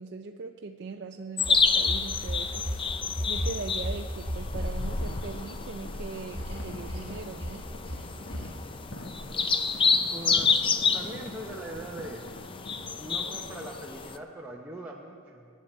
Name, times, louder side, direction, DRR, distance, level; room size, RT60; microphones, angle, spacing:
voice 1, 0.0-2.7 3.3-7.7, right 4 dB, 55° right, 4 dB, 0.4 m, -40 dB
sound 1, 1.4-14.2, left 5 dB, 25° left, 0.4 m, -29 dB
sound 2, 1.4-2.8 3.1-5.1 6.3-7.1 7.3-7.6 7.9-8.1 8.3-8.5, equal, 25° right, 2.1 m, -34 dB
sound 3, 4.5-13.7, left 1 dB, 60° left, 1.6 m, -45 dB
voice 2, 10.1-12.3 13.0-15.5, right 1 dB, 10° right, -4 dB, 0.8 m, -41 dB
24.5 x 9.3 x 4.4 m, 2.3 s
head